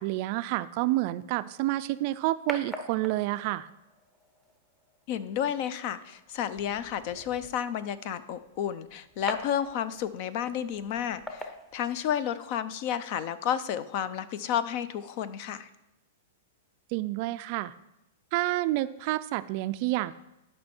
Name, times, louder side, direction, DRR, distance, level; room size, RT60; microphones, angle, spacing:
voice 1, 0.0-3.7 16.9-17.7 18.3-20.2, right 17 dB, 45° right, 15 dB, 0.3 m, -29 dB
sound 1, 1.5-12.5, left 1 dB, 5° left, 0.8 m, -45 dB
voice 2, 5.1-15.7, left 9 dB, 45° left, 15 dB, 0.5 m, -31 dB
11.5 x 5.5 x 4.4 m, 0.88 s
hypercardioid pair, 150°, 0 cm